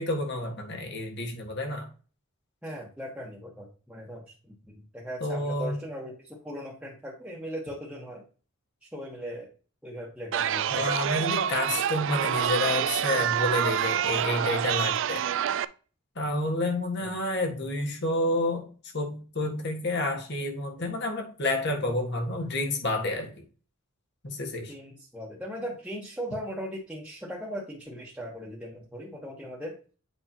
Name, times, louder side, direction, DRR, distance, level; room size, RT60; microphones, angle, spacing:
voice 1, 0.0-1.9 5.2-5.8 10.7-15.2 16.1-18.7 18.9-23.3 24.2-24.7, left 2 dB, 55° left, 2 dB, 1.7 m, -29 dB
voice 2, 2.6-4.2 4.7-8.2 8.8-9.5 9.8-10.8 17.0-17.1 24.7-29.7, equal, 5° right, -5 dB, 1.2 m, -38 dB
Chatter, 10.3-15.6, right 9 dB, 65° right, 0.3 m, -27 dB
8.1 x 5.3 x 2.9 m, 0.37 s
head